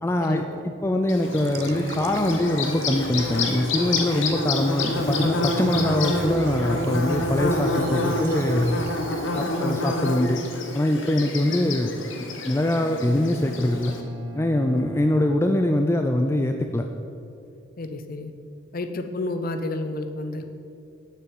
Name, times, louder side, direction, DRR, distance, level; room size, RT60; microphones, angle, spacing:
voice 1, 0.0-8.8 9.3-10.4 10.7-11.9 12.5-13.9 14.3-16.8, left 1 dB, 10° left, 5 dB, 0.3 m, -23 dB
Bird / Buzz, 1.1-14.0, left 2 dB, 65° left, 1.0 m, -28 dB
sound 1, 1.2-11.7, right 3 dB, 50° right, 0.5 m, -37 dB
voice 2, 9.4-9.8 14.7-14.8 17.8-18.3 18.7-20.5, left 2 dB, 45° left, 7 dB, 0.7 m, -31 dB
Bowed string instrument, 12.5-16.3, right 1 dB, 70° right, 2.3 m, -41 dB
7.1 x 6.8 x 7.9 m, 2.5 s
head